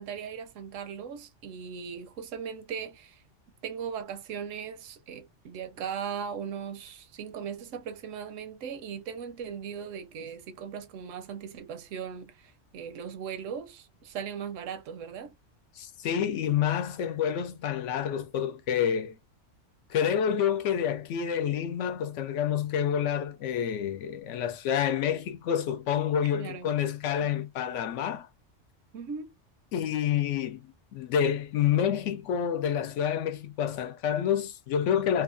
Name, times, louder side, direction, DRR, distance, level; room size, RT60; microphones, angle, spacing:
voice 1, 0.0-3.2 3.6-15.3 26.3-26.8 27.2-27.5 28.9-29.3, right 7 dB, 80° right, 0.9 m, -38 dB
voice 2, 15.8-19.2 19.9-28.3 29.7-35.2, left 9 dB, 75° left, 0.9 m, -28 dB
2.8 x 2.4 x 2.5 m
omnidirectional pair, 1.3 m